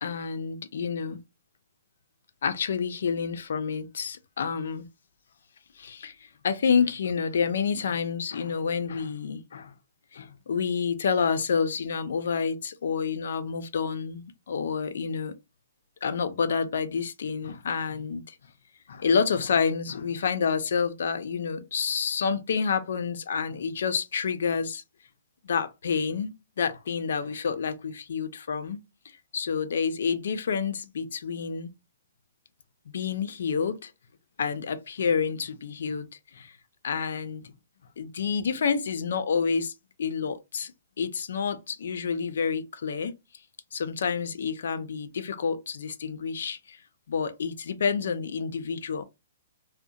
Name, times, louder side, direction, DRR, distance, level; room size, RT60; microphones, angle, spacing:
voice 1, 0.0-1.2 2.4-4.9 5.8-6.2 6.4-9.7 10.1-15.3 16.0-18.4 18.9-24.8 25.4-28.8 29.3-31.7 32.9-33.9 34.4-36.1 36.3-36.5 36.8-37.5 38.0-39.7 40.0-40.7 41.0-43.1 43.7-46.8 47.1-49.0, left 6 dB, 70° left, 0.4 m, -28 dB
2.7 x 2.1 x 2.3 m
hypercardioid pair, 165°, 0 cm